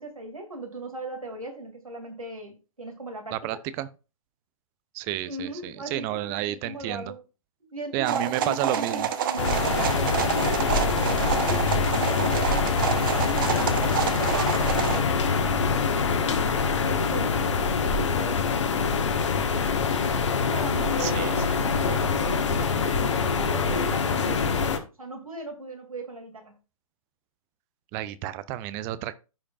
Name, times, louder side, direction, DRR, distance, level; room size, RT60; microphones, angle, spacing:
voice 1, 0.0-3.6 5.3-7.2 7.6-12.8 13.2-18.7 20.5-24.5 25.0-26.5, right 2 dB, 75° right, 2.5 m, -38 dB
voice 2, 3.3-3.9 4.9-7.1 7.9-9.1 21.0-21.7 27.9-29.2, right 14 dB, 15° right, 0.3 m, -31 dB
sound 1, 8.1-15.0, right 8 dB, 35° right, 0.9 m, -28 dB
sound 2, 9.4-24.8, left 5 dB, 55° left, 1.4 m, -25 dB
15.0 x 5.0 x 2.4 m
figure-of-eight pair, 125°, 18 cm